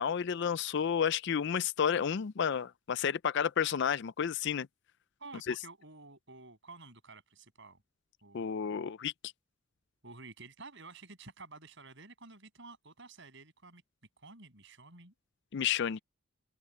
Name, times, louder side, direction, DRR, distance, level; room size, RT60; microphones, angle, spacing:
voice 1, 0.0-4.7 5.5-5.6 8.3-9.1 15.5-16.0, left 7 dB, 55° left, 0.4 m, -31 dB
voice 2, 5.2-7.8 8.2-8.5 10.0-13.8 14.2-15.1, right 3 dB, 55° right, 7.8 m, -51 dB
open air
head